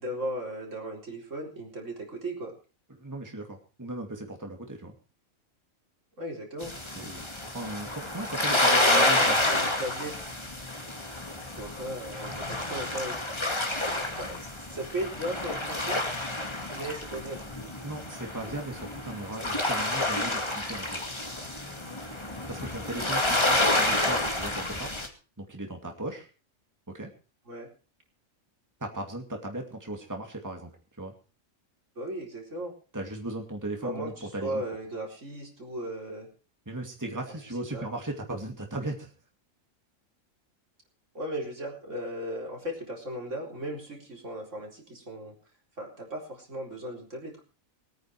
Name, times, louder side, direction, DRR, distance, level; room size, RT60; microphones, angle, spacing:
voice 1, 0.0-2.5 6.2-6.7 8.7-10.2 11.4-13.2 14.2-16.0 16.7-17.4 27.5-27.7 32.0-32.7 33.8-36.3 37.3-37.4 37.7-37.9 41.1-45.4 45.8-47.4, right 1 dB, 60° right, 0 dB, 4.6 m, -36 dB
voice 2, 2.9-4.9 7.0-9.4 17.8-21.0 22.5-25.0 25.4-26.3 26.9-27.1 28.8-31.1 32.9-34.6 36.7-39.1, right 1 dB, 15° right, 2 dB, 2.4 m, -37 dB
sound 1, 6.6-25.1, left 1 dB, 20° left, 2.3 m, -29 dB
22.0 x 9.6 x 4.8 m, 0.36 s
omnidirectional pair, 1.4 m